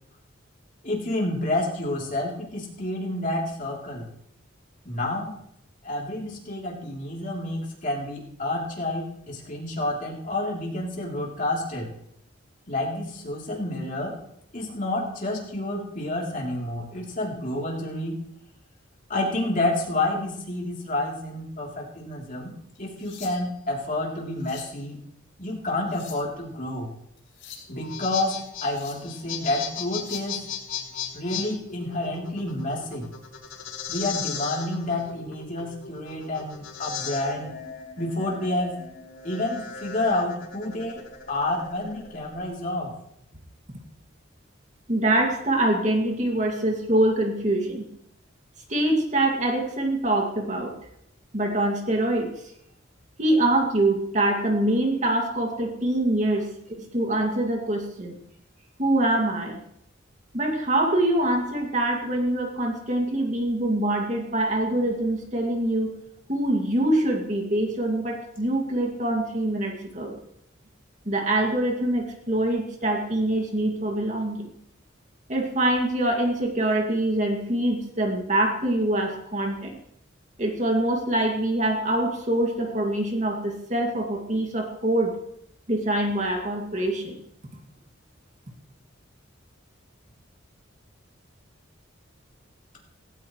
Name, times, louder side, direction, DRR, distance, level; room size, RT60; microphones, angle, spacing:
voice 1, 0.8-4.1 4.8-5.3 5.8-11.9 12.7-14.2 14.5-18.2 19.1-25.0 25.4-26.9 27.7-30.4 31.1-33.1 33.9-37.5 38.0-38.8 39.2-41.0 41.3-42.9, left 1 dB, 40° left, -2 dB, 3.5 m, -29 dB
sound 1, 22.8-23.7 24.2-24.8 25.7-26.4 27.2-27.7 28.5-29.1 29.8-30.3 32.4-32.6 33.1-33.3 33.8-33.9 35.1-35.7 36.8-37.0, left 7 dB, 65° left, 7.4 m, -47 dB
sound 2, 27.7-42.4, left 8 dB, 85° left, 4.0 m, -37 dB
voice 2, 44.9-47.9 48.7-50.7 51.3-52.3 53.2-56.5 56.8-58.2 58.8-59.6 60.3-65.9 66.3-70.2 71.1-74.5 75.3-79.7 80.4-85.1 85.7-87.2, right 1 dB, 40° right, 1 dB, 2.4 m, -24 dB
17.5 x 17.0 x 3.3 m, 0.73 s
head